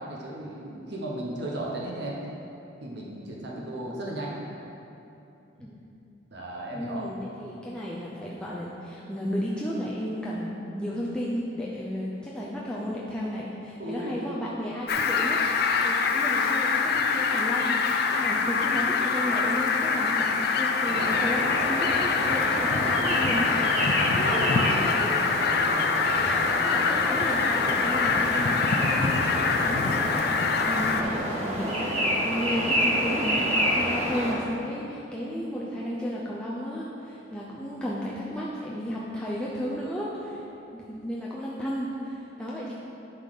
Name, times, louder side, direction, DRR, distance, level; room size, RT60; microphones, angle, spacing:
voice 1, 0.0-2.2 2.8-4.4 6.3-7.1 13.8-14.2 18.1-18.6 22.7-22.8 23.8-24.5 24.9-25.0, right 1 dB, 60° right, -4 dB, 1.0 m, -36 dB
voice 2, 3.4-3.8 5.6-5.8 6.7-23.7 23.9-25.1 26.1-29.2 29.6-30.4 30.7-40.4 40.7-42.7, equal, 5° left, -6 dB, 0.6 m, -33 dB
Fowl, 14.9-31.0, left 5 dB, 55° left, 0.4 m, -25 dB
sound 1, 20.8-34.3, equal, 35° right, 1.5 m, -29 dB
10.0 x 4.1 x 4.9 m, 2.9 s
head